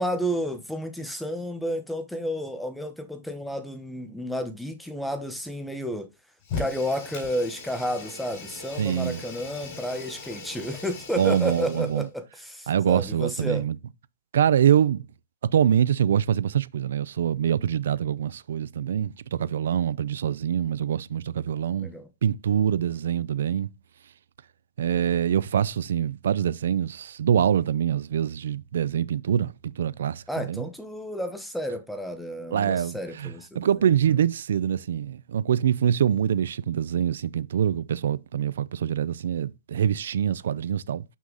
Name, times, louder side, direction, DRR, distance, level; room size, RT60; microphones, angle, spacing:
voice 1, 0.0-6.1 6.6-13.6 21.8-22.1 30.3-33.7 34.1-34.2, equal, ahead, 1.0 m, -31 dB
Fire, 6.4-12.0, left 4 dB, 40° left, 4.7 m, -39 dB
voice 2, 8.8-9.2 11.2-12.0 12.7-13.8 14.3-15.0 15.5-21.9 22.2-23.7 24.8-30.6 32.5-41.0, right 9 dB, 75° right, 0.4 m, -24 dB
6.1 x 5.5 x 3.9 m
hypercardioid pair, 165°, 0 cm